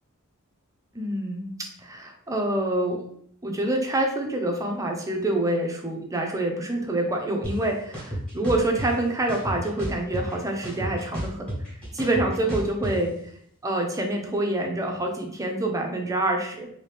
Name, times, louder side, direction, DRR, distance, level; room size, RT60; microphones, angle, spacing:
voice 1, 0.9-1.5 1.8-3.0 3.4-11.5 11.9-13.1 13.6-16.7, right 1 dB, 15° right, 2 dB, 0.5 m, -26 dB
sound 1, 7.4-7.5 7.9-8.9 9.3-10.4 10.6-12.9, right 1 dB, 5° left, 1.2 m, -31 dB
2.9 x 2.8 x 3.3 m, 0.66 s
head